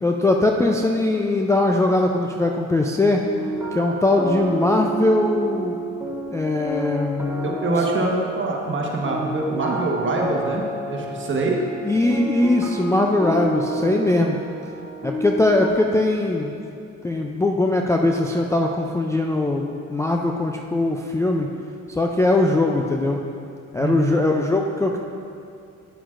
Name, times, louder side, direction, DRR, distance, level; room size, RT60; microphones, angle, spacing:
voice 1, 0.0-3.2 3.7-5.8 6.3-7.5 8.0-8.1 11.8-14.4 15.0-16.5 17.0-21.5 21.9-23.2 23.7-25.0, left 2 dB, 10° left, 0 dB, 0.3 m, -21 dB
sound 1, 3.2-15.7, right 2 dB, 5° right, 0.9 m, -30 dB
voice 2, 7.4-11.6 23.8-24.2, right 2 dB, 40° right, -1 dB, 1.2 m, -24 dB
9.0 x 7.1 x 2.5 m, 2.5 s
cardioid pair, 90°, 30 cm